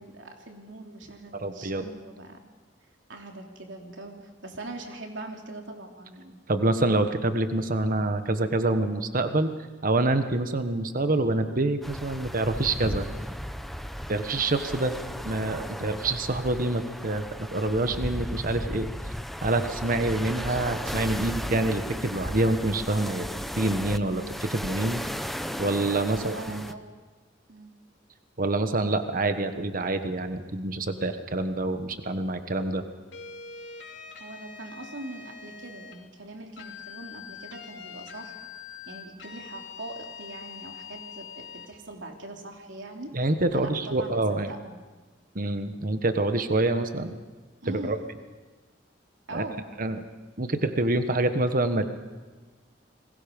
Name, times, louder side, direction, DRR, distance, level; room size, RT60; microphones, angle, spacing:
voice 1, 0.0-2.4 3.1-6.4 26.1-26.8 27.5-27.7 34.2-38.4 38.9-43.2 43.5-44.7 47.6-48.0 49.3-49.6, right 2 dB, 85° right, 2 dB, 3.2 m, -42 dB
voice 2, 1.3-1.8 6.5-9.5 9.8-13.0 14.1-14.9 15.2-17.2 17.5-18.9 19.4-23.3 23.6-24.2 24.5-25.0 25.6-26.6 28.4-32.8 43.1-44.5 45.3-47.1 47.7-48.0 49.3-49.4 49.8-50.0 50.4-51.8, right 2 dB, 50° right, 8 dB, 1.4 m, -26 dB
sound 1, 11.8-26.7, equal, ahead, 0.9 m, -35 dB
sound 2, 33.1-36.0 36.6-41.7, left 7 dB, 70° left, 2.8 m, -43 dB
29.5 x 21.5 x 5.4 m, 1.3 s
head